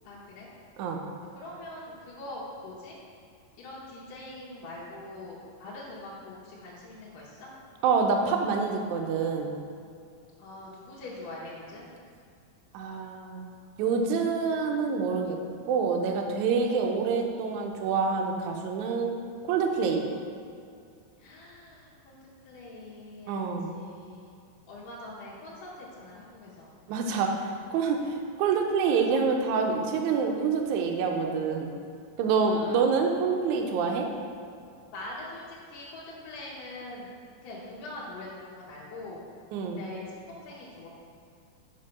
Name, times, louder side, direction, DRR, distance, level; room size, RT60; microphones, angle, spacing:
voice 1, 0.0-0.5 1.4-3.0 3.6-7.5 10.4-11.9 16.7-17.1 21.2-22.2 22.4-24.3 24.7-26.7 32.4-32.9 34.9-37.1 37.4-39.2 39.7-40.9, left 2 dB, 70° left, -7 dB, 2.7 m, -43 dB
voice 2, 7.8-9.5 12.7-13.5 13.8-15.4 15.7-19.1 19.5-20.1 23.3-23.7 26.9-28.0 28.4-31.7 32.2-34.1 39.5-39.8, right 5 dB, 75° right, 2 dB, 1.8 m, -26 dB
6.4 x 5.2 x 5.8 m, 2.4 s
omnidirectional pair, 4.1 m